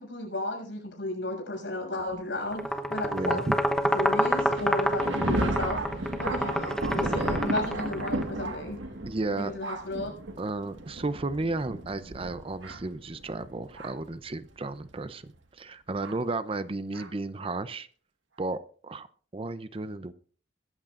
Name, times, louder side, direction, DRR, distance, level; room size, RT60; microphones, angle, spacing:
voice 1, 0.0-3.6 3.9-8.8 9.4-10.1, left 2 dB, 60° left, 1 dB, 6.9 m, -34 dB
sound 1, 2.5-8.2, equal, 5° left, 0.9 m, -28 dB
voice 2, 3.0-3.6 6.5-6.7 9.1-9.5 10.4-17.9 18.4-19.1 19.3-20.1, right 2 dB, 30° right, 13 dB, 0.5 m, -33 dB
Thunder, 4.2-14.1 14.9-15.0 16.0-16.2 16.9-17.1, right 2 dB, 70° right, 1.6 m, -34 dB
22.0 x 13.5 x 2.5 m, 0.43 s
head